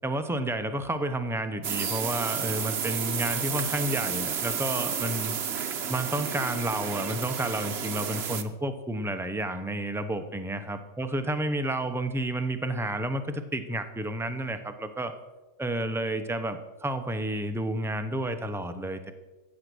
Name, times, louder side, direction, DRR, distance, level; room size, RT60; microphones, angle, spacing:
voice 1, 0.0-5.4 5.9-15.1 15.6-19.1, right 1 dB, 5° right, 7 dB, 0.5 m, -31 dB
sound 1, 1.6-8.4, right 7 dB, 50° right, 1.0 m, -31 dB
15.0 x 8.3 x 6.2 m, 1.1 s
omnidirectional pair, 1.5 m